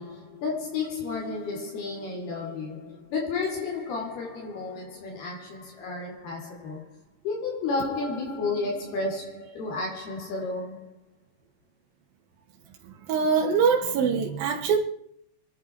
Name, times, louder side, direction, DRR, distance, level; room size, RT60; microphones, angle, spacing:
voice 1, 0.0-6.9 7.2-10.9, left 3 dB, 70° left, 5.2 m, -32 dB
voice 2, 13.1-14.8, right 6 dB, 65° right, 3.3 m, -23 dB
26.0 x 10.5 x 4.5 m
omnidirectional pair, 4.7 m